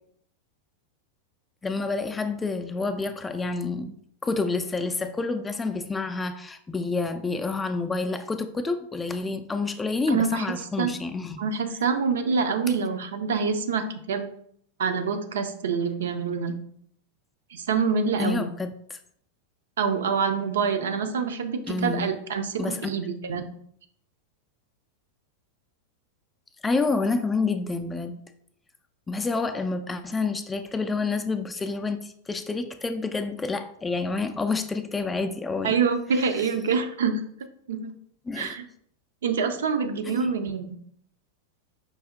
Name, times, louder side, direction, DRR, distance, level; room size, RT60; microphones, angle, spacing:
voice 1, 1.6-4.0 4.2-11.4 18.2-19.0 21.7-22.1 22.6-22.9 26.6-28.2 29.1-35.7 38.3-38.5 40.1-40.3, left 3 dB, 15° left, 7 dB, 0.4 m, -28 dB
voice 2, 10.1-10.5 10.8-11.0 11.4-14.3 14.8-16.5 17.5-18.5 19.8-23.5 35.6-37.2 37.7-37.9 38.3-38.6 39.2-40.8, right 5 dB, 60° right, 7 dB, 0.5 m, -26 dB
5.3 x 2.7 x 3.6 m, 0.66 s
figure-of-eight pair, 90°, 0 cm